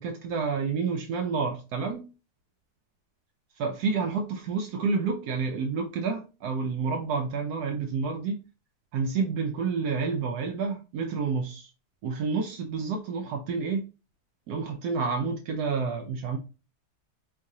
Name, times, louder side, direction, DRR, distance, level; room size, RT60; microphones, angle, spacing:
voice 1, 0.0-2.1 3.6-8.4 8.9-11.7 12.0-13.8 14.5-16.4, right 5 dB, 80° right, 1.2 m, -29 dB
4.7 x 3.1 x 2.7 m
omnidirectional pair, 1.7 m